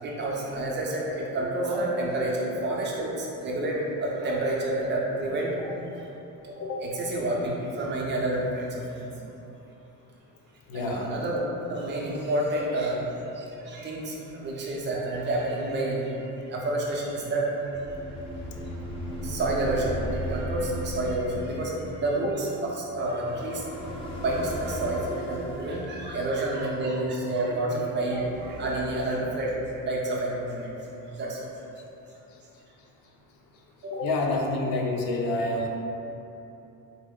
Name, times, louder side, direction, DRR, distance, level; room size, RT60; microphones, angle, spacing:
voice 1, 0.0-5.7 6.8-9.1 10.7-11.4 11.7-13.0 13.4-16.0 16.5-17.4 19.2-23.6 24.2-30.7 31.2-31.4 33.9-34.0, right 1 dB, 35° right, -3 dB, 0.5 m, -29 dB
voice 2, 10.7-11.0 33.9-35.7, left 2 dB, 85° left, 1 dB, 0.6 m, -28 dB
sound 1, 17.7-27.3 27.9-30.0, right 1 dB, 15° left, 0.4 m, -37 dB
4.1 x 2.0 x 3.6 m, 3.0 s
cardioid pair, 155°, 33 cm